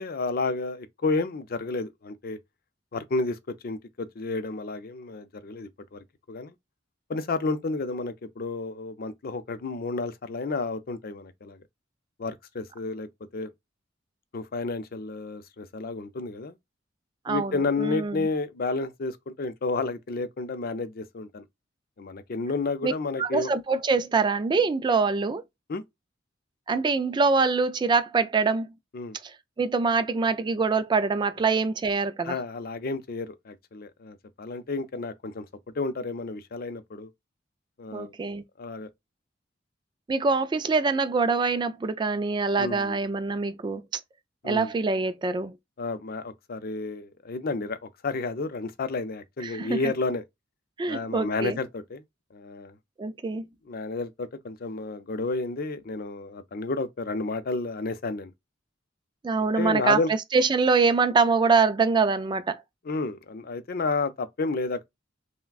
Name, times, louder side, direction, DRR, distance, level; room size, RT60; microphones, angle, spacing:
voice 1, 0.0-2.4 2.9-6.5 7.1-11.6 12.2-13.5 14.3-16.6 17.3-21.4 22.0-23.5 25.7-25.8 28.9-29.2 32.2-35.5 35.8-37.1 37.8-38.1 38.6-38.9 42.6-43.0 44.4-44.7 45.8-47.8 48.0-50.2 50.9-52.0 52.3-52.8 53.7-58.3 59.6-60.1 62.8-64.8, left 3 dB, 50° left, 0.5 m, -31 dB
voice 2, 17.3-18.3 22.8-22.9 23.2-25.4 26.7-28.7 29.6-32.4 37.9-38.4 40.1-43.8 44.4-45.5 49.4-49.8 50.8-51.6 53.0-53.5 59.2-62.6, right 4 dB, 25° right, 0.3 m, -24 dB
5.7 x 2.1 x 2.3 m
head